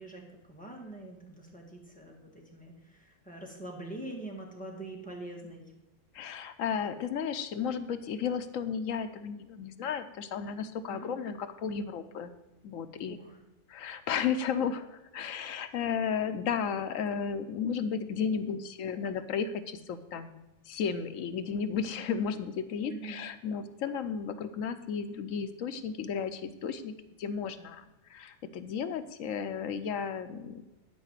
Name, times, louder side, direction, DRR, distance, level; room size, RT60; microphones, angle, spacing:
voice 1, 0.0-5.7 10.9-11.1 13.1-13.4 22.9-23.2, right 2 dB, 5° left, -1 dB, 1.7 m, -44 dB
voice 2, 6.1-12.3 12.6-13.2 13.7-26.9 27.2-27.8 28.1-30.6, left 7 dB, 70° left, 10 dB, 1.0 m, -34 dB
11.5 x 4.9 x 7.4 m, 1.0 s
omnidirectional pair, 1.5 m